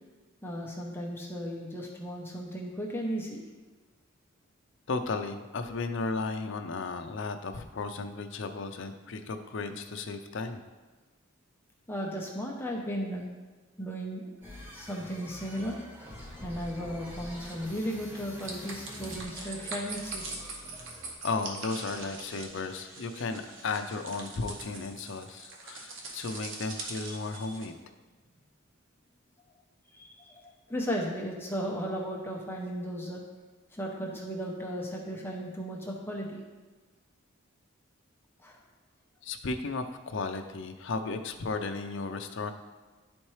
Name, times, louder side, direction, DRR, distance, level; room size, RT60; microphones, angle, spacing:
voice 1, 0.4-3.4 11.9-13.2 13.8-14.3 14.7-15.8 16.4-20.5 27.1-27.2 29.9-33.2 33.7-36.4 38.4-38.6, equal, 10° left, -1 dB, 0.7 m, -35 dB
voice 2, 4.9-10.6 21.2-27.8 39.2-42.5, left 3 dB, 60° left, 7 dB, 0.5 m, -34 dB
sound 1, 14.4-21.1, equal, 10° right, 1.0 m, -45 dB
sound 2, 18.4-27.7, right 3 dB, 65° right, 1.0 m, -42 dB
11.0 x 4.3 x 3.2 m, 1.3 s
head